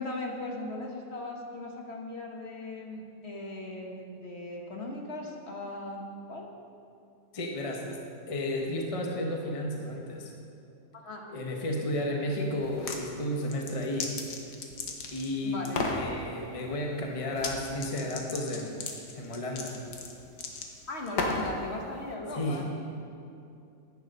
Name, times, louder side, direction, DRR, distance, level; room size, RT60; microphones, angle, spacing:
voice 1, 0.0-6.0 6.3-6.5 10.9-11.2 15.4-15.8 20.9-22.7, left 2 dB, 45° left, 0 dB, 1.3 m, -38 dB
voice 2, 7.3-10.4 11.3-14.1 15.1-18.9 19.1-19.8 22.3-22.6, left 1 dB, 25° left, 1 dB, 0.8 m, -33 dB
sound 1, 12.6-13.0 13.4-15.3 15.6-16.0 17.3-17.5 17.8-21.5, left 4 dB, 85° left, 1.6 m, -34 dB
10.5 x 9.4 x 5.3 m, 2.6 s
omnidirectional pair, 1.7 m